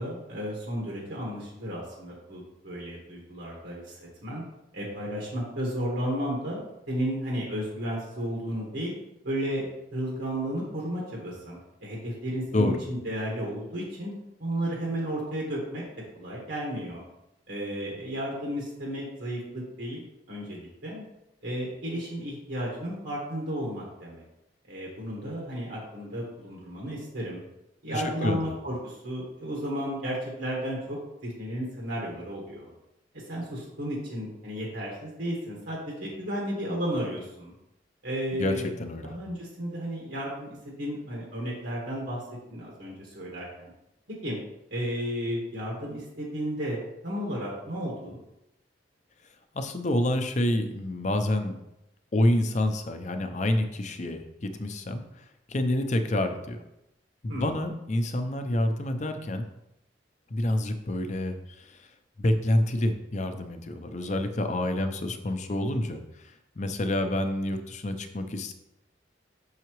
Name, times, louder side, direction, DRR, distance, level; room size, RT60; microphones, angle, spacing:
voice 1, 0.0-4.4 4.7-8.9 9.2-14.1 14.4-15.8 16.1-17.0 17.5-21.0 21.4-24.2 24.7-27.4 27.8-32.7 33.3-37.5 38.0-38.6 39.1-42.2 42.5-43.7 44.1-44.4 44.7-48.2 57.3-57.5, equal, 80° right, -4 dB, 1.6 m, -33 dB
voice 2, 27.9-28.6 38.3-38.5 38.8-39.1 49.5-51.5 52.1-55.0 55.5-56.6 57.2-59.5 60.3-61.9 62.2-68.5, left 1 dB, 40° left, 7 dB, 0.6 m, -28 dB
6.8 x 5.6 x 3.1 m, 0.88 s
head